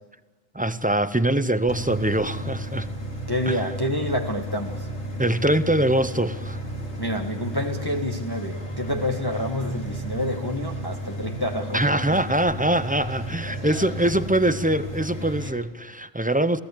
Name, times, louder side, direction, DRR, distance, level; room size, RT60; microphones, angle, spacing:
voice 1, 0.5-2.9 3.5-3.7 5.2-6.6 11.7-16.6, right 1 dB, 10° right, 0.5 m, -23 dB
sound 1, 1.7-15.5, right 1 dB, 60° left, 3.3 m, -33 dB
voice 2, 3.3-4.9 7.0-11.8, left 1 dB, 20° left, 1.5 m, -28 dB
28.5 x 17.5 x 8.5 m
omnidirectional pair, 1.3 m